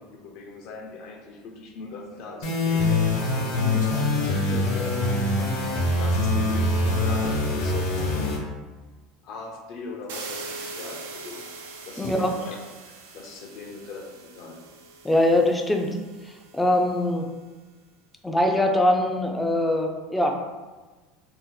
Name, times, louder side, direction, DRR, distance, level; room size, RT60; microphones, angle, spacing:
voice 1, 0.0-3.1 3.6-5.2 6.0-8.3 9.2-11.5 11.8-12.6 12.8-14.6 19.1-19.2, left 3 dB, 55° left, 2 dB, 0.6 m, -40 dB
sound 1, 2.4-8.4, left 2 dB, 80° left, 1.0 m, -24 dB
sound 2, 10.1-16.9, right 3 dB, 90° right, 0.4 m, -41 dB
voice 2, 12.0-12.3 15.0-15.9 16.5-17.2 18.2-20.6, left 1 dB, 5° left, 2 dB, 0.4 m, -22 dB
2.7 x 2.0 x 3.8 m, 1.3 s
supercardioid pair, 135°, 0 cm